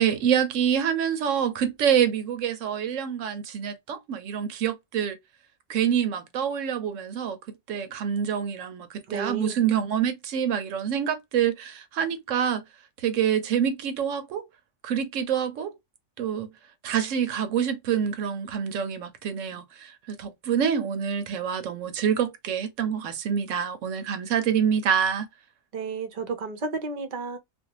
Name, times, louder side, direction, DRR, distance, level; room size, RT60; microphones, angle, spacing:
voice 1, 0.0-5.2 5.7-7.4 7.7-12.6 13.0-14.4 14.8-15.7 16.2-16.5 16.8-25.3, right 8 dB, 80° right, 1.0 m, -26 dB
voice 2, 9.1-9.6 25.7-27.4, right 4 dB, 45° right, 0.6 m, -32 dB
2.6 x 2.2 x 2.8 m
omnidirectional pair, 1.3 m